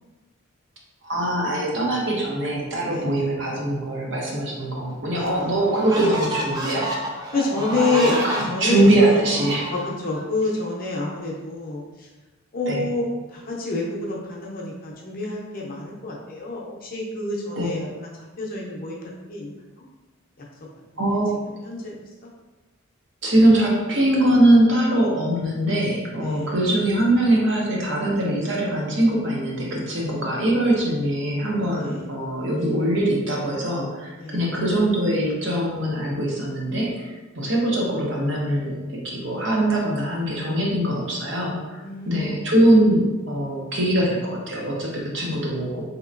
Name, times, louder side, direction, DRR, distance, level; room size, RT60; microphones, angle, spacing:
voice 1, 1.0-7.1 7.5-9.7 12.7-12.8 17.5-17.7 21.0-21.3 23.2-41.8 42.0-45.8, right 1 dB, 60° right, -3 dB, 0.8 m, -22 dB
voice 2, 2.9-3.3 5.1-5.5 7.3-9.4 9.7-12.1 12.5-17.9 18.4-19.5 19.8-19.9 21.5-22.3 26.2-26.5 31.7-32.1 34.2-34.4 41.8-42.5, left 2 dB, 45° left, -3 dB, 0.6 m, -28 dB
sound 1, 4.6-4.7 5.3-10.2, right 1 dB, 20° right, 0.4 m, -31 dB
4.2 x 2.8 x 2.5 m, 1.2 s
head